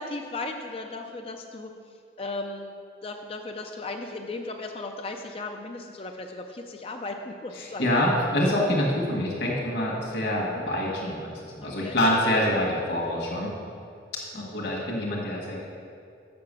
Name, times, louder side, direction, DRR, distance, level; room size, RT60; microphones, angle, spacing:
voice 1, 0.0-1.7 2.2-2.7 3.0-7.9 10.4-10.7 11.6-12.0 14.3-14.6, left 2 dB, 30° left, 4 dB, 0.4 m, -36 dB
voice 2, 7.8-13.5 14.3-15.6, left 1 dB, 60° left, -4 dB, 1.6 m, -26 dB
6.9 x 5.7 x 6.7 m, 2.4 s
head